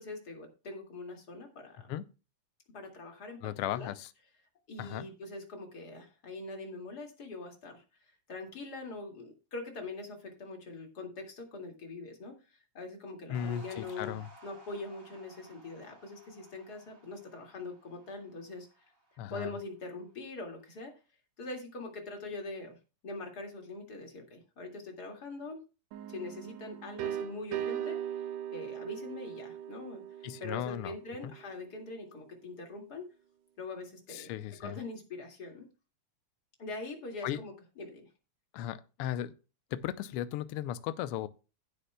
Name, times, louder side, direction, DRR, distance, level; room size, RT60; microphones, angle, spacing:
voice 1, 0.0-1.9 2.7-3.9 4.7-14.2 14.4-18.9 19.3-20.9 21.4-22.8 23.0-25.6 26.1-33.1 33.6-35.7 36.6-38.1, left 3 dB, 35° left, 2.4 m, -43 dB
voice 2, 3.4-4.1 4.8-5.1 13.3-14.3 19.2-19.5 30.2-30.9 31.2-31.3 34.1-34.8 37.2-37.4 38.5-39.3 39.7-41.3, left 11 dB, 85° left, 1.3 m, -36 dB
sound 1, 13.3-19.8, right 2 dB, 25° right, 3.0 m, -56 dB
sound 2, 25.9-31.6, right 10 dB, 75° right, 1.9 m, -39 dB
16.0 x 8.2 x 2.2 m
omnidirectional pair, 3.3 m